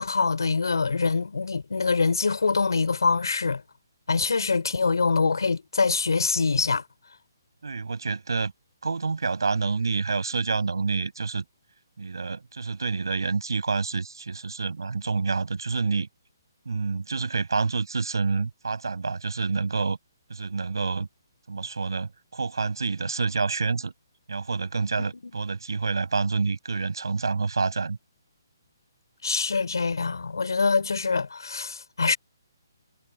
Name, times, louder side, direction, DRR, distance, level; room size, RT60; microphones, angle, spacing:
voice 1, 0.0-3.6 4.1-6.8 29.2-32.2, left 4 dB, 85° left, 3.4 m, -24 dB
voice 2, 7.6-8.5 8.8-11.4 12.0-16.1 16.7-20.0 20.3-21.1 21.5-23.9 24.3-28.0, right 4 dB, 85° right, 7.5 m, -28 dB
hypercardioid pair, 155°, 2 cm